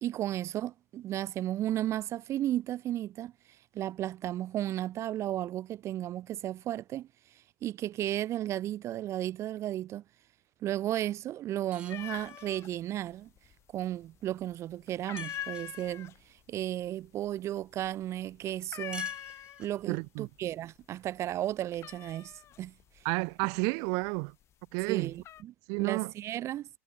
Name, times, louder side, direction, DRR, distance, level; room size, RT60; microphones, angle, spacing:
voice 1, 0.0-3.3 3.7-7.1 7.6-10.0 10.6-13.3 13.7-19.1 19.6-22.7 24.9-25.5 25.8-26.7, right 13 dB, 35° right, 1.0 m, -34 dB
sound 1, 11.7-12.6 15.2-15.9 18.9-19.9, right 3 dB, 10° right, 2.3 m, -49 dB
sound 2, 11.9-12.7 13.0-13.8 14.2-14.5 14.9-20.0 20.3-20.8 21.2-24.3 24.8-25.4, left 11 dB, 35° left, 2.2 m, -43 dB
voice 2, 19.9-20.3 23.0-24.3 24.7-25.1 25.7-26.1, right 38 dB, 50° right, 1.3 m, -31 dB
hypercardioid pair, 100°, 8 cm